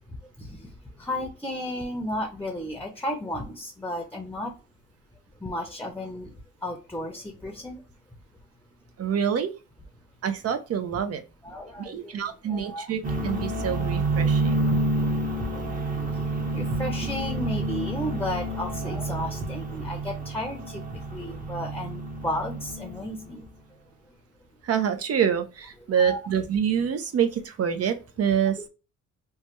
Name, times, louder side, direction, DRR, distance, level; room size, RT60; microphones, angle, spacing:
voice 1, 0.4-0.7 1.0-4.5 5.4-6.3 6.6-7.8 11.4-12.1 12.5-12.9 16.5-20.8 21.1-23.4 26.0-26.2 28.3-28.4, left 1 dB, 5° left, 3 dB, 0.7 m, -33 dB
voice 2, 9.0-9.5 10.2-11.2 11.8-14.6 24.6-28.6, right 8 dB, 55° right, 8 dB, 0.6 m, -26 dB
sound 1, 13.0-23.3, right 2 dB, 25° right, 0.9 m, -28 dB
3.2 x 2.1 x 3.0 m, 0.31 s
cardioid pair, 90°, 30 cm